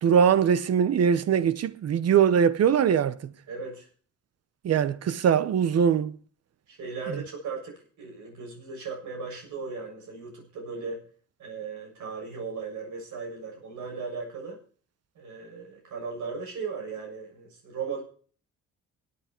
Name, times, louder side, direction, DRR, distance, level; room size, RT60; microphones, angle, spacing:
voice 1, 0.0-3.3 4.6-6.2, right 8 dB, 55° right, 0.9 m, -22 dB
voice 2, 3.5-3.9 6.7-11.0 11.4-14.6 15.2-18.0, right 5 dB, 75° right, 7.1 m, -37 dB
17.5 x 8.7 x 4.4 m
cardioid pair, 90°, 30 cm